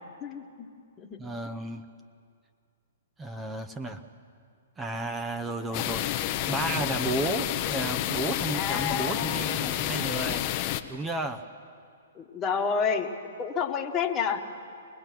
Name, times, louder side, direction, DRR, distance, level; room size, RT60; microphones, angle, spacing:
voice 1, 0.2-0.7 1.0-1.2 5.7-5.8 8.5-9.9 12.1-13.1 13.4-14.4, left 6 dB, 25° left, 3 dB, 1.4 m, -30 dB
voice 2, 1.2-1.8 3.2-4.0 4.8-6.0 6.5-10.4 10.9-11.5, right 2 dB, 10° right, 7 dB, 0.8 m, -32 dB
sound 1, 5.7-10.8, left 13 dB, 40° left, 0.8 m, -29 dB
25.0 x 19.5 x 6.1 m, 2.3 s
hypercardioid pair, 135°, 0 cm